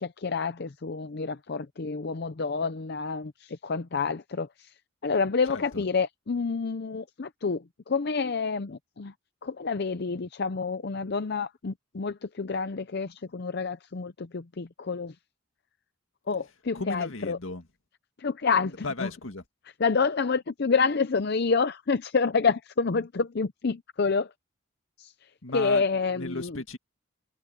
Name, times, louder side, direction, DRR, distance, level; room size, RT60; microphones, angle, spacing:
voice 1, 0.0-4.7 5.0-9.1 9.4-15.1 16.3-17.4 18.2-19.1 19.8-24.3 25.0-25.1 25.5-26.6, left 4 dB, 50° left, 0.6 m, -28 dB
voice 2, 5.5-5.8 16.7-17.6 18.6-19.4 25.4-25.8 26.1-26.8, left 3 dB, 75° left, 2.0 m, -35 dB
head